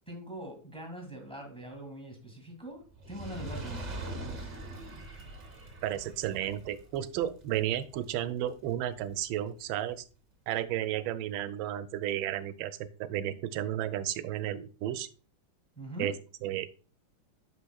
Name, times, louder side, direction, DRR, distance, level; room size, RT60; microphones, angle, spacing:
voice 1, 0.1-4.1 15.8-16.1, equal, 5° left, 3 dB, 1.7 m, -43 dB
Fire, 2.9-9.3 10.0-10.1, right 2 dB, 45° right, 0.6 m, -43 dB
voice 2, 5.8-10.0 10.5-15.1 16.0-16.1 16.4-16.7, right 12 dB, 80° right, 13 dB, 1.3 m, -33 dB
8.1 x 5.9 x 2.3 m, 0.37 s
omnidirectional pair, 2.2 m